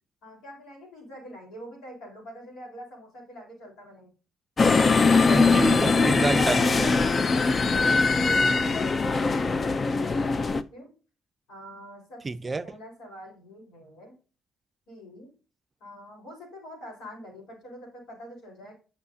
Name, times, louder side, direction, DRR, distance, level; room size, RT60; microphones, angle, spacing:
voice 1, 0.2-4.1 7.1-7.5 8.1-10.9 11.5-14.1 14.9-15.3 15.8-18.7, equal, 90° left, 4.1 m, -45 dB
sound 1, 4.6-10.6, left 4 dB, 40° left, 0.4 m, -21 dB
voice 2, 5.1-7.0 12.2-12.6, right 3 dB, 30° right, 0.4 m, -29 dB
9.6 x 6.2 x 2.7 m
cardioid pair, 90°, 0 cm